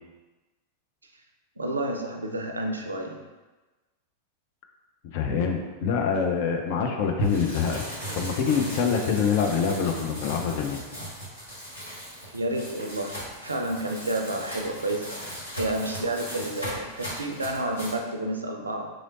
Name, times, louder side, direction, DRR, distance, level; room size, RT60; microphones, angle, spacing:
voice 1, 1.6-3.2 12.3-15.2 15.6-18.9, right 1 dB, 75° right, 4 dB, 0.4 m, -30 dB
voice 2, 5.1-7.8 8.1-10.8, left 6 dB, 50° left, 3 dB, 0.5 m, -25 dB
sound 1, 7.2-18.0, right 1 dB, 85° left, 1.4 m, -37 dB
3.8 x 3.1 x 2.5 m, 1.2 s
figure-of-eight pair, 90°, 0 cm